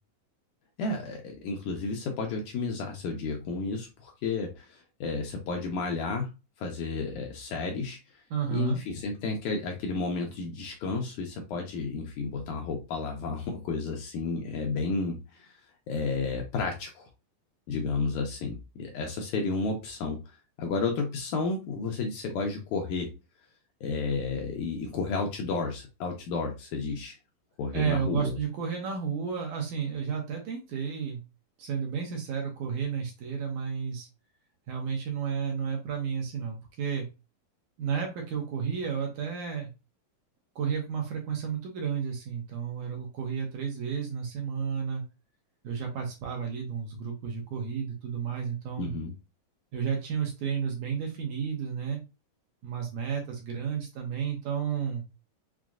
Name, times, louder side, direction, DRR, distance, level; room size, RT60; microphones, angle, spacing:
voice 1, 0.8-6.3 6.6-8.0 8.5-15.5 15.9-17.1 17.7-20.2 20.6-23.1 23.8-27.2 27.6-28.4 48.8-49.1, left 4 dB, 75° left, 2 dB, 1.9 m, -32 dB
voice 2, 8.3-8.8 27.7-31.2 31.6-34.1 34.7-37.1 37.8-39.7 40.6-45.0 45.6-48.9 49.7-52.0 52.6-55.0, right 7 dB, 70° right, 0 dB, 2.1 m, -32 dB
6.0 x 2.2 x 2.4 m, 0.27 s
omnidirectional pair, 3.9 m